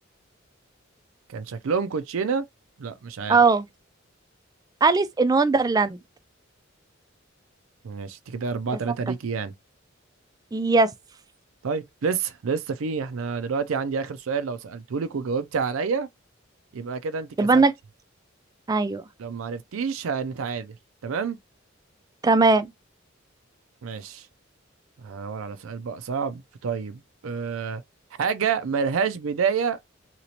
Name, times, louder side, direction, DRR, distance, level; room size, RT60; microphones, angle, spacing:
voice 1, 1.3-2.5 2.8-3.4 7.8-9.5 11.6-16.1 16.7-17.6 19.2-20.8 21.0-21.4 23.8-24.3 25.0-27.8 28.2-29.8, right 5 dB, 80° right, 0.5 m, -28 dB
voice 2, 3.3-3.7 4.8-6.0 10.5-10.9 17.4-17.7 18.7-19.0 22.2-22.7, right 3 dB, 20° right, 0.3 m, -19 dB
2.9 x 2.9 x 2.8 m
head